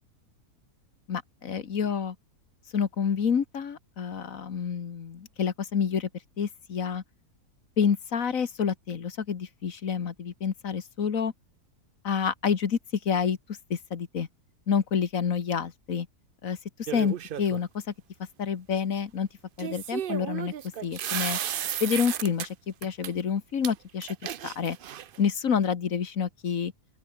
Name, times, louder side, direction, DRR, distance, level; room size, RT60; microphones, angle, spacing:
voice 1, 1.1-2.2 2.7-6.1 6.4-7.0 7.8-11.3 12.0-12.8 13.1-13.4 13.7-14.3 14.7-16.1 16.4-16.6 16.9-17.8 18.4-19.3 19.6-20.5 20.8-21.4 21.8-24.2 24.4-24.8 25.2-26.7, left 7 dB, 60° left, 1.7 m, -28 dB
sound 1, 16.9-17.6 19.6-22.5 22.8-23.1 23.6-23.7 24.0-25.2, right 10 dB, 65° right, 0.5 m, -33 dB
open air
omnidirectional pair, 1.6 m